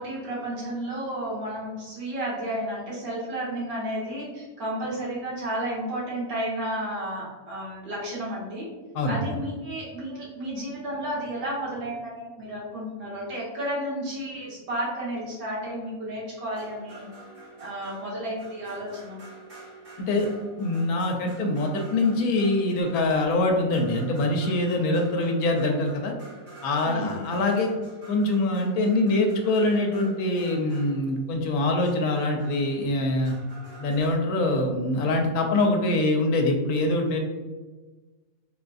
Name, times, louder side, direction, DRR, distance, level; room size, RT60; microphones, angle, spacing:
voice 1, 0.0-8.7 9.1-17.0 17.6-19.2 26.8-27.2, right 1 dB, 85° right, -6 dB, 1.5 m, -32 dB
voice 2, 8.9-9.3 20.0-20.3 20.6-26.1 26.6-27.7 28.1-33.4 33.8-37.2, left 2 dB, 80° left, 2 dB, 1.0 m, -24 dB
sound 1, 16.5-34.1, right 2 dB, 55° right, 1.3 m, -48 dB
3.7 x 2.5 x 2.3 m, 1.3 s
omnidirectional pair, 1.5 m